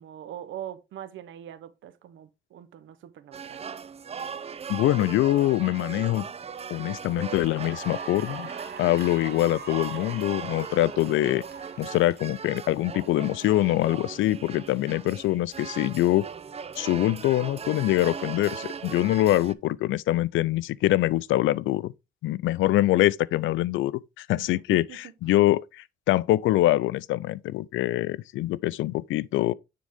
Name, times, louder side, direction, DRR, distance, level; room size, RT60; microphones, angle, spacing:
voice 1, 0.0-3.6 24.3-25.1, right 11 dB, 75° right, 0.9 m, -42 dB
sound 1, 3.3-19.5, right 6 dB, 30° right, 0.5 m, -39 dB
voice 2, 4.7-6.3 6.7-8.5 8.8-11.4 11.8-16.2 16.8-21.9 22.2-24.8 25.2-29.5, left 15 dB, 80° left, 0.4 m, -24 dB
Cheering / Applause, 6.1-6.4 6.9-13.4, right 5 dB, 55° right, 2.2 m, -43 dB
9.6 x 3.8 x 3.5 m
cardioid pair, 90°, 20 cm